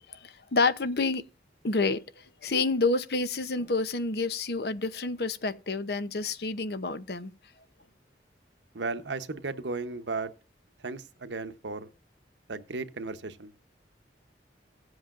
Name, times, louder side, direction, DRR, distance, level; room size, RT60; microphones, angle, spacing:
voice 1, 0.1-1.2 1.6-2.0 2.4-7.3, left 3 dB, 65° left, 0.8 m, -28 dB
voice 2, 8.7-10.3 10.8-11.9 12.5-13.5, right 3 dB, 90° right, 1.0 m, -35 dB
16.5 x 8.0 x 2.6 m
head